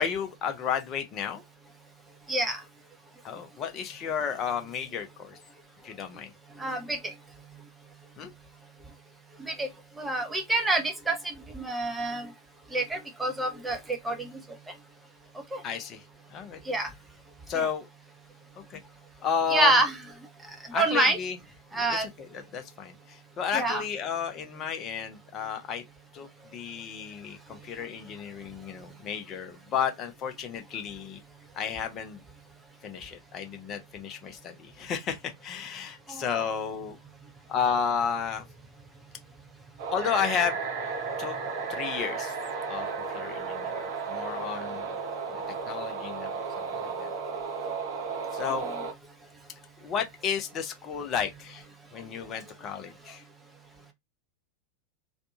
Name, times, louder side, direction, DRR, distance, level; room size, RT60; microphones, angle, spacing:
voice 1, 0.0-1.4 3.2-5.4 5.8-6.3 8.2-8.3 15.6-16.0 16.3-16.6 17.5-17.9 18.7-18.8 19.2-19.8 20.7-21.4 21.8-25.8 26.1-31.2 31.5-32.2 32.8-37.0 37.5-38.4 39.9-40.6 41.2-41.4 41.7-42.4 42.7-42.9 43.1-43.8 44.1-44.9 45.3-46.3 46.6-47.1 48.3-48.7 49.8-51.6 51.9-53.2, left 7 dB, 30° left, 0.6 m, -32 dB
voice 2, 2.3-2.6 6.6-7.1 9.4-9.7 10.0-12.3 12.7-14.3 15.5-15.6 16.7-16.9 17.6-17.7 19.5-19.9 20.7-21.2 21.7-22.1 23.5-23.8 36.1-36.2 48.5-48.7, right 2 dB, 10° right, 0.6 m, -27 dB
sound 1, 39.8-48.9, right 5 dB, 50° right, 0.6 m, -34 dB
2.6 x 2.2 x 2.7 m
figure-of-eight pair, 90°, 0 cm